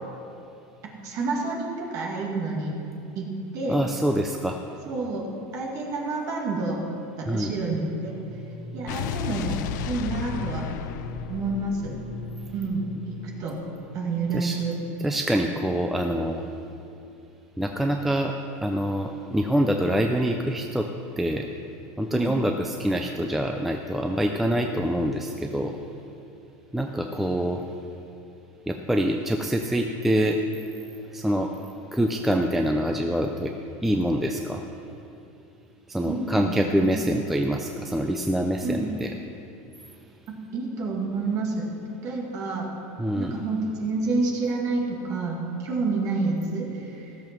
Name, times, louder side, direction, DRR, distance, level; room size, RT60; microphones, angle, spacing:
voice 1, 1.0-2.7 3.2-3.3 3.5-3.8 4.9-5.3 5.5-6.8 7.2-8.1 8.7-9.6 9.9-10.7 11.3-11.9 12.5-13.6 13.9-14.7 22.1-22.4 36.0-36.9 38.6-38.9 40.3-41.7 42.0-42.7 43.1-47.2, right 3 dB, 35° right, -1 dB, 2.0 m, -29 dB
voice 2, 3.7-4.6 7.3-7.5 14.3-14.6 15.0-16.4 17.6-18.3 18.6-20.9 21.2-21.5 22.0-25.8 26.7-27.6 28.7-30.4 31.1-31.5 31.9-33.5 33.8-34.6 35.9-39.1 43.0-43.3, equal, ahead, 3 dB, 0.3 m, -25 dB
sound 1, 7.7-13.6, left 1 dB, 30° left, 3.4 m, -40 dB
Explosion, 8.9-13.2, left 9 dB, 75° left, 0.5 m, -34 dB
15.5 x 6.9 x 6.0 m, 2.7 s
cardioid pair, 175°, 10 cm